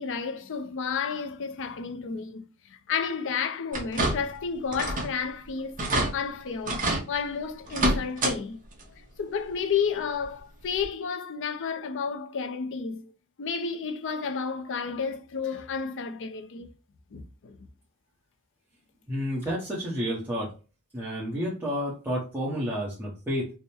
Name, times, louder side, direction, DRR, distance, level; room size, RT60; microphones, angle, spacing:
voice 1, 0.0-5.7 6.1-8.6 9.2-13.1 13.4-16.7 17.1-17.6, left 6 dB, 55° left, 0.5 m, -31 dB
sound 1, 3.7-4.4 4.7-5.2 5.5-5.6 5.8-6.1 6.7-7.0 7.7-8.4 8.7-8.8 10.2-10.3 10.8-10.9, right 1 dB, 35° right, 1.0 m, -27 dB
voice 2, 19.1-20.5 20.9-23.5, equal, 10° right, 0.9 m, -30 dB
3.5 x 2.1 x 4.2 m
head